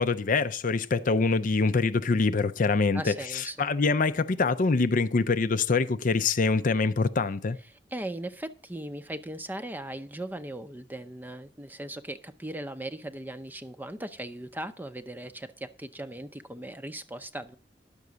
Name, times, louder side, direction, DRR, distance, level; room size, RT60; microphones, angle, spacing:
voice 1, 0.0-7.6, left 4 dB, 50° left, 0.5 m, -25 dB
voice 2, 2.9-3.7 7.7-17.6, right 1 dB, 10° right, 0.6 m, -38 dB
10.5 x 6.8 x 6.1 m
head